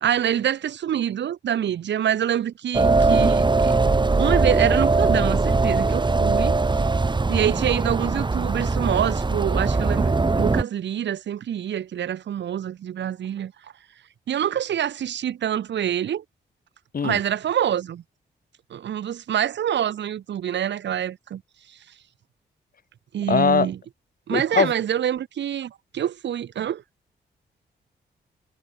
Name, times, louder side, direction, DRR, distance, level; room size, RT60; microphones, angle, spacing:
voice 1, 0.0-3.8 4.2-6.9 7.3-13.5 14.3-16.2 17.0-18.0 18.7-21.4 23.1-23.8 24.3-26.8, right 10 dB, 80° right, 2.2 m, -26 dB
sound 1, 2.7-10.6, right 3 dB, 25° right, 1.4 m, -21 dB
voice 2, 23.3-23.7 24.3-24.7, left 6 dB, 50° left, 2.3 m, -21 dB
cardioid pair, 70°, 18 cm